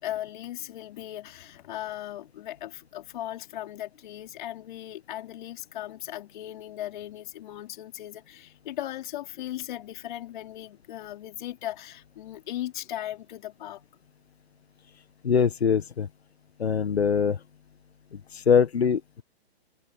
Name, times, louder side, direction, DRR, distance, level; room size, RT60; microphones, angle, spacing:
voice 1, 0.0-13.8, left 13 dB, 50° left, 4.6 m, -37 dB
voice 2, 15.2-16.1 16.6-17.4 18.1-19.2, left 6 dB, 85° left, 1.6 m, -23 dB
hypercardioid pair, 140°, 31 cm